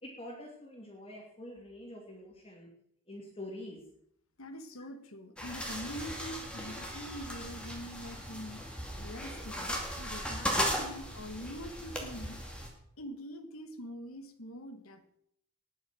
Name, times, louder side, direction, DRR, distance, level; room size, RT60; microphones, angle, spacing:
voice 1, 0.0-2.7 3.1-3.8, left 1 dB, 25° left, -3 dB, 2.6 m, -46 dB
voice 2, 4.4-8.6 9.0-12.4 13.0-15.0, equal, 80° left, 9 dB, 1.6 m, -44 dB
sound 1, 5.4-12.7, equal, 5° left, 2.4 m, -37 dB
19.5 x 6.5 x 6.3 m, 0.72 s
head